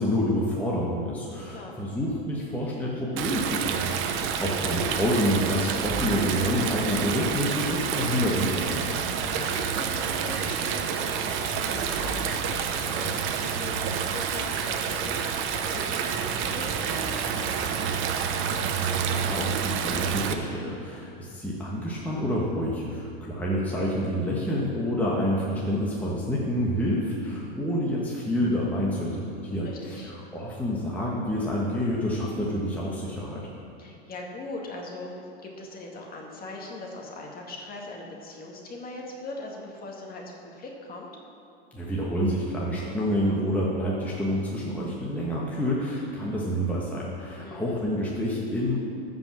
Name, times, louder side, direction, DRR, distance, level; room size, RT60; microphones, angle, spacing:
voice 1, 0.0-9.0 18.8-33.4 41.7-48.8, equal, 5° left, -6 dB, 1.4 m, -28 dB
Stream, 3.2-20.3, right 7 dB, 40° right, 0.9 m, -29 dB
sound 1, 8.8-13.9, right 3 dB, 60° right, 1.7 m, -40 dB
voice 2, 9.1-18.3 29.6-30.1 33.8-35.2 35.4-41.1 47.4-47.6, left 2 dB, 25° left, -1 dB, 2.0 m, -40 dB
13.0 x 5.4 x 7.5 m, 2.6 s
supercardioid pair, 125°, 33 cm